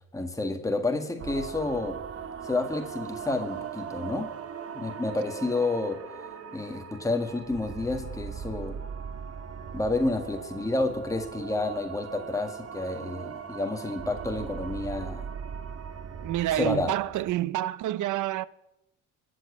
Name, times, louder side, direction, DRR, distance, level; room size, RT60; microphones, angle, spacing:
voice 1, 0.1-2.0 2.4-4.3 4.7-6.0 6.5-8.8 9.7-15.3 16.6-16.9, left 2 dB, 10° left, 1.8 m, -30 dB
sound 1, 1.2-17.3, right 7 dB, 50° right, 1.7 m, -39 dB
voice 2, 16.2-18.5, right 14 dB, 80° right, 0.7 m, -28 dB
22.0 x 7.5 x 8.4 m
cardioid pair, 90°, 30 cm